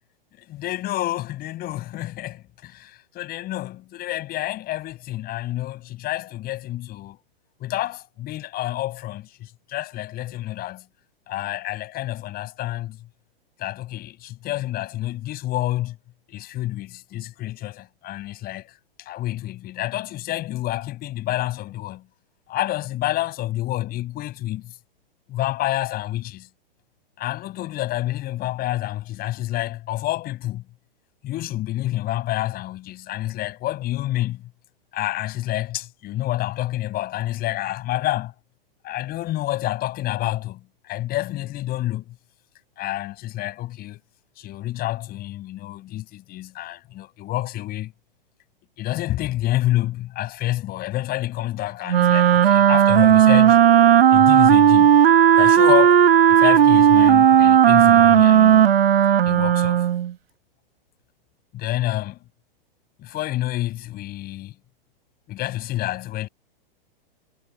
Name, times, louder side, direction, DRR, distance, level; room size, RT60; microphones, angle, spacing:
voice 1, 0.4-7.2 7.6-10.8 11.3-13.0 13.6-16.0 16.3-18.7 19.0-22.0 22.5-24.7 25.3-26.5 27.2-30.6 31.2-34.5 34.9-38.3 38.8-40.6 40.9-42.1 42.8-44.0 44.4-47.9 48.8-53.6 54.1-55.0 55.4-58.7 59.3-59.9 61.5-62.2 63.0-64.5 65.3-66.3, left 15 dB, 30° left, 7.8 m, -28 dB
Wind instrument woodwind instrument, 51.9-60.1, right 9 dB, 80° right, 1.2 m, -14 dB
hypercardioid pair, 125°, 29 cm